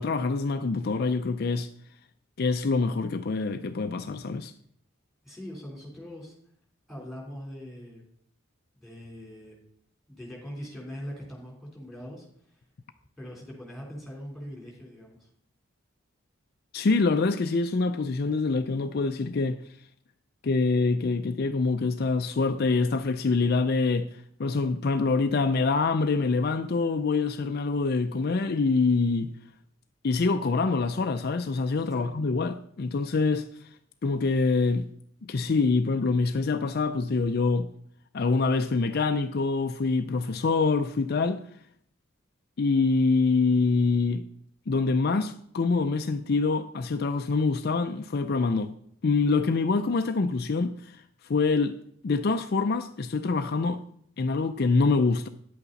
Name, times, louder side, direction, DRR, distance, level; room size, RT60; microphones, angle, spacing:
voice 1, 0.0-1.7 2.4-4.5 16.7-19.6 20.4-29.3 30.0-33.7 34.0-34.9 35.2-37.7 38.1-41.4 42.6-44.3 44.7-48.7 49.0-51.8 52.0-53.8 54.2-55.3, left 4 dB, 50° left, 0.4 m, -25 dB
voice 2, 5.2-6.4 6.9-8.0 8.8-9.6 10.1-12.6 13.2-15.3 31.9-32.1, equal, ahead, 3.5 m, -41 dB
10.0 x 8.3 x 4.0 m
head